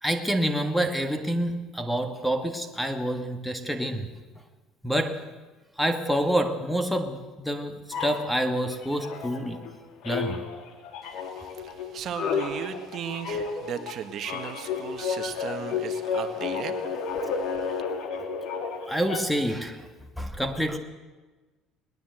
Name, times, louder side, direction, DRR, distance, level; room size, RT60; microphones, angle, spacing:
voice 1, 0.0-4.1 4.8-5.2 5.8-9.6 10.0-10.4 18.9-19.9 20.2-20.8, equal, ahead, 7 dB, 1.6 m, -27 dB
sound 1, 7.9-9.7 10.0-19.5, left 5 dB, 65° left, 3.5 m, -32 dB
voice 2, 11.2-16.8 17.2-17.8, right 8 dB, 45° right, 7 dB, 1.9 m, -37 dB
21.0 x 19.5 x 7.9 m, 1.2 s
cardioid pair, 140°, 0 cm